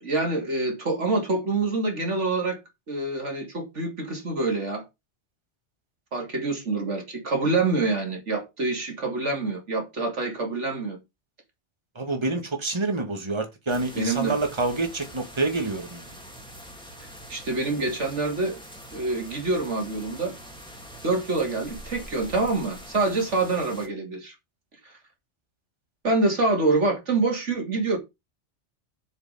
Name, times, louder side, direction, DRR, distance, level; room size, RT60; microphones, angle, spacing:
voice 1, 0.0-2.6 2.9-4.8 6.1-11.0 14.0-14.4 17.3-18.6 18.9-20.3 21.0-24.3 24.8-24.9 26.0-28.0, right 3 dB, 90° right, 2.9 m, -26 dB
voice 2, 12.0-16.1, right 3 dB, 25° right, 1.8 m, -27 dB
sound 1, 13.7-23.9, equal, 5° left, 2.6 m, -44 dB
7.2 x 7.1 x 5.0 m
omnidirectional pair, 1.2 m